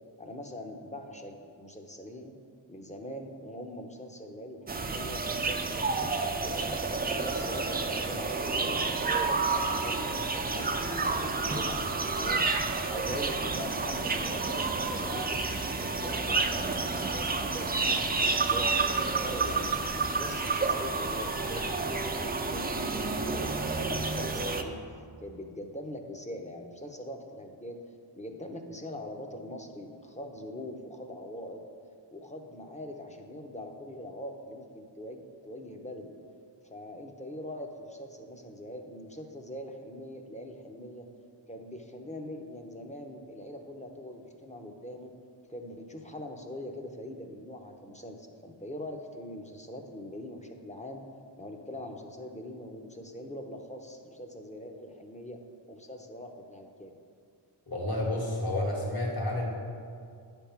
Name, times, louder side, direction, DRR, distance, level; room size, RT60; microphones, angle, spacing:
voice 1, 0.2-2.3 2.7-6.6 7.0-12.5 12.9-18.7 19.0-23.0 23.2-27.8 28.1-31.6 32.1-36.1 36.6-41.1 41.5-45.1 45.5-51.0 51.4-55.4 55.7-56.9, left 1 dB, 15° left, 3 dB, 0.8 m, -42 dB
sound 1, 4.7-24.6, right 3 dB, 20° right, 0.4 m, -30 dB
voice 2, 57.7-59.5, left 1 dB, 50° left, -2 dB, 1.9 m, -30 dB
9.7 x 3.5 x 5.8 m, 2.2 s
cardioid pair, 70°, 46 cm